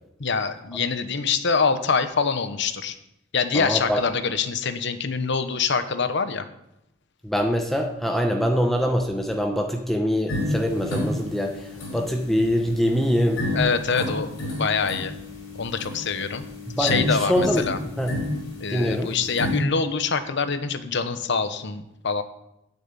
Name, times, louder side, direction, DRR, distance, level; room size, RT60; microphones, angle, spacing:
voice 1, 0.2-3.0 3.3-6.4 13.5-15.1 15.5-16.4 16.8-17.8 18.6-22.2, left 5 dB, 65° left, 10 dB, 1.0 m, -25 dB
voice 2, 3.5-4.0 7.2-13.4 16.7-17.6 18.0-18.1 18.7-19.1, equal, ahead, 3 dB, 0.9 m, -24 dB
sound 1, 10.3-19.6, left 1 dB, 90° left, 5.1 m, -31 dB
9.8 x 7.3 x 9.0 m, 0.84 s
head